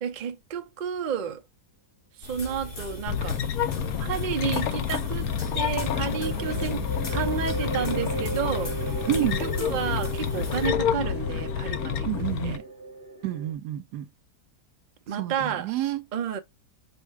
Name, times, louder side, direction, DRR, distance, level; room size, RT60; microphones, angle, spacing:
voice 1, 0.0-1.4 2.2-3.4 4.0-5.3 5.5-6.8 7.1-8.9 9.2-12.1 12.4-12.6 15.1-15.7 16.1-16.4, right 7 dB, 50° right, 0.5 m, -31 dB
sound 1, 2.2-10.7, equal, 50° left, 1.6 m, -39 dB
sound 2, 3.1-12.6, left 8 dB, 70° left, 1.1 m, -29 dB
sound 3, 3.2-13.5, right 2 dB, 15° right, 0.8 m, -37 dB
voice 2, 9.1-9.4 12.0-12.6 13.2-14.1 15.2-16.0, right 12 dB, 85° right, 1.2 m, -29 dB
4.9 x 2.2 x 4.7 m
omnidirectional pair, 1.7 m